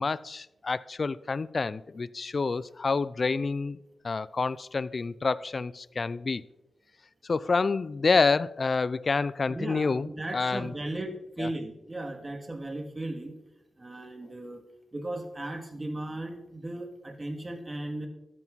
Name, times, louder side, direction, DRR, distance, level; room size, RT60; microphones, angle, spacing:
voice 1, 0.0-3.8 4.0-6.4 7.3-10.7 11.4-11.5, left 4 dB, 50° left, 0.5 m, -28 dB
voice 2, 9.5-13.3 13.8-14.6 14.9-18.1, right 1 dB, 30° right, 2.4 m, -36 dB
13.0 x 9.2 x 4.1 m
cardioid pair, 55°, 0 cm